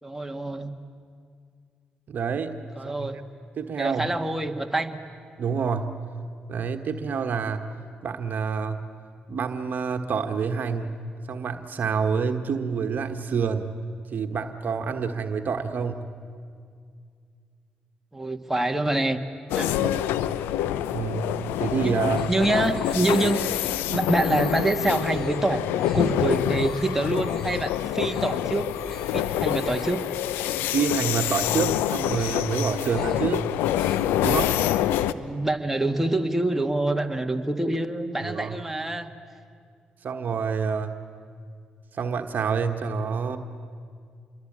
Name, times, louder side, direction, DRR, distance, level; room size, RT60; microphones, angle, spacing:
voice 1, 0.0-0.7 2.8-3.2 3.8-5.0 18.1-19.2 19.5-19.7 21.8-22.0 22.3-23.4 23.9-25.6 25.9-28.7 29.1-30.0 35.1-39.1, right 2 dB, 10° right, 5 dB, 2.0 m, -26 dB
voice 2, 2.1-2.5 2.8-3.1 3.6-4.1 5.4-6.0 6.5-7.6 8.0-8.8 9.3-10.9 11.3-13.7 14.1-16.1 19.8-19.9 20.9-21.2 21.6-22.3 30.7-33.5 34.2-34.5 38.2-38.6 40.0-40.9 41.9-43.4, right 6 dB, 60° right, 6 dB, 1.4 m, -27 dB
sound 1, 19.5-35.1, left 12 dB, 85° left, 0.6 m, -26 dB
sound 2, 22.2-23.8 24.1-24.6 25.0-25.4 25.7-26.1 26.5-26.9 27.2-27.6 27.9-28.4 28.7-29.1 29.5-30.0 30.3-30.8 31.1-31.6 32.0-32.5 32.8-33.3 33.6-34.2, right 1 dB, 10° left, 5.2 m, -45 dB
27.5 x 22.5 x 8.8 m, 2.2 s
hypercardioid pair, 50°, 3 cm